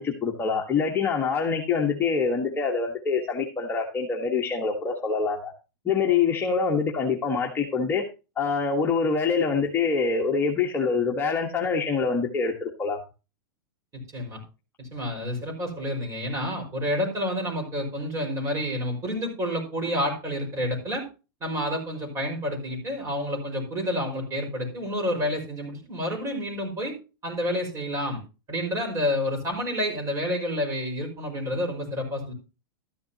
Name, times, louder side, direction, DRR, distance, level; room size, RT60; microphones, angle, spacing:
voice 1, 0.0-5.5 5.8-8.0 8.4-13.0, left 5 dB, 15° left, -1 dB, 1.5 m, -25 dB
voice 2, 13.9-14.4 14.8-21.0 21.4-26.9 27.2-28.2 28.5-32.3, left 1 dB, 25° right, 2 dB, 5.4 m, -29 dB
13.0 x 10.5 x 2.9 m, 0.31 s
hypercardioid pair, 125°, 12 cm